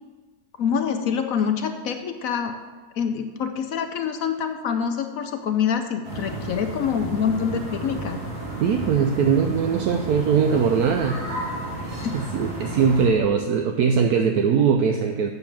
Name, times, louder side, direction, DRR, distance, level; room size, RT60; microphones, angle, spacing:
voice 1, 0.6-2.5 3.0-8.2 12.0-12.1, left 7 dB, 65° left, 6 dB, 0.8 m, -25 dB
sound 1, 6.0-13.1, right 2 dB, 55° right, 3.0 m, -32 dB
voice 2, 8.6-11.3 11.8-15.3, right 6 dB, 70° right, 5 dB, 1.0 m, -21 dB
8.1 x 6.6 x 7.2 m, 1.4 s
omnidirectional pair, 2.0 m